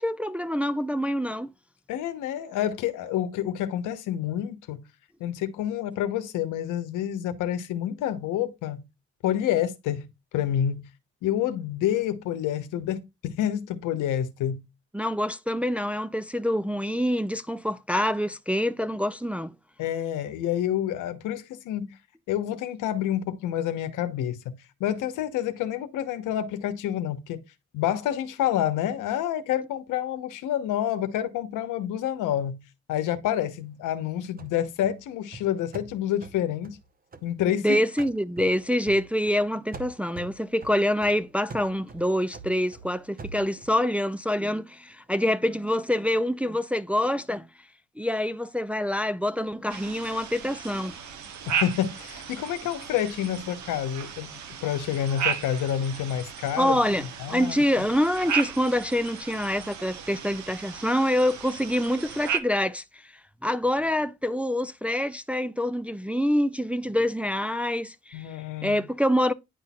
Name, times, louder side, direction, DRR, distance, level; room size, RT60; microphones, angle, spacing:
voice 1, 0.0-1.5 14.9-19.5 37.6-47.5 48.0-51.0 56.6-63.1 63.4-68.3 68.6-69.3, equal, 5° right, 0.4 m, -26 dB
voice 2, 1.9-4.9 5.2-8.8 9.2-10.0 10.3-10.8 11.2-14.6 19.8-22.0 22.3-27.4 27.7-32.6 32.9-36.8 37.2-37.8 51.6-54.3 54.6-56.9 57.2-57.8 68.1-68.9, left 11 dB, 90° left, 0.9 m, -28 dB
sound 1, 34.4-37.6 38.0-39.5 39.7-43.9, right 3 dB, 30° right, 0.8 m, -44 dB
sound 2, 49.7-62.4, right 7 dB, 70° right, 1.1 m, -35 dB
9.7 x 4.2 x 2.3 m
cardioid pair, 90°, 30 cm